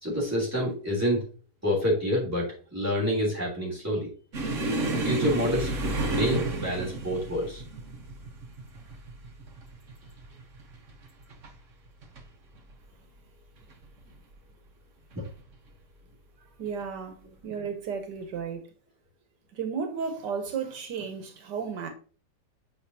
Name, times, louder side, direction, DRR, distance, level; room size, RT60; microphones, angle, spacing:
voice 1, 0.0-1.2 1.6-4.1 5.0-5.7 6.1-7.6 15.1-15.2, equal, 10° right, 3.1 m, -27 dB
sound 1, 4.3-11.5 11.8-12.2 12.6-12.7 13.6-14.1 15.1-15.3 16.7-16.8, right 2 dB, 50° right, 1.4 m, -32 dB
voice 2, 16.6-17.2 17.4-18.7 19.5-21.9, right 6 dB, 85° right, 1.5 m, -33 dB
7.5 x 5.3 x 2.8 m
omnidirectional pair, 1.8 m